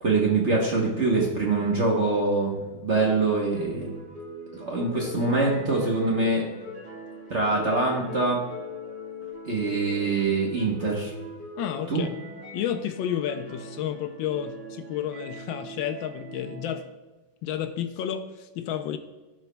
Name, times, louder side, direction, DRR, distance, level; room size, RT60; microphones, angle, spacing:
voice 1, 0.0-4.0 4.6-6.5 7.3-8.4 9.4-11.1 11.9-12.0, right 3 dB, 45° right, -2 dB, 1.0 m, -24 dB
sound 1, 3.5-16.8, equal, 25° right, 1.9 m, -41 dB
voice 2, 11.5-12.1 12.5-16.8 17.4-19.0, left 9 dB, 75° left, 7 dB, 1.2 m, -31 dB
15.0 x 5.0 x 2.2 m, 1.2 s
omnidirectional pair, 2.2 m